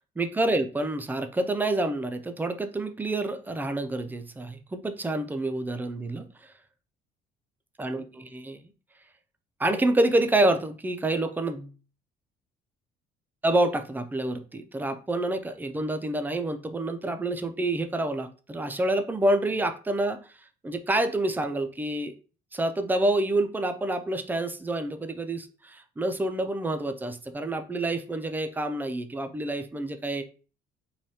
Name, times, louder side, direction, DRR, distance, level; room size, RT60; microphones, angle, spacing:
voice 1, 0.2-6.5 7.8-8.7 9.6-11.7 13.4-20.2 20.6-22.1 22.5-30.2, right 1 dB, 10° right, 8 dB, 0.3 m, -28 dB
3.2 x 2.2 x 2.7 m, 0.37 s
cardioid pair, 110°, 17 cm